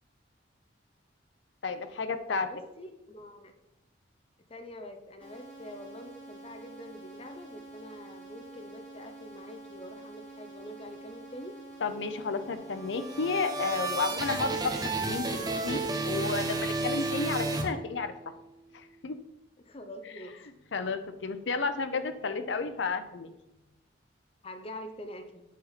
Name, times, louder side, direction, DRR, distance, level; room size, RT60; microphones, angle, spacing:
voice 1, 1.6-2.5 11.8-18.1 18.7-19.2 20.7-23.3, left 4 dB, 80° left, 9 dB, 0.6 m, -32 dB
voice 2, 2.3-3.5 4.5-11.6 19.6-20.5 24.4-25.4, left 1 dB, 30° left, 6 dB, 0.7 m, -45 dB
sound 1, 5.2-14.2, right 2 dB, 5° left, 2.3 m, -48 dB
sound 2, 12.7-18.3, right 3 dB, 20° right, 0.7 m, -32 dB
8.2 x 4.3 x 4.1 m, 0.94 s
head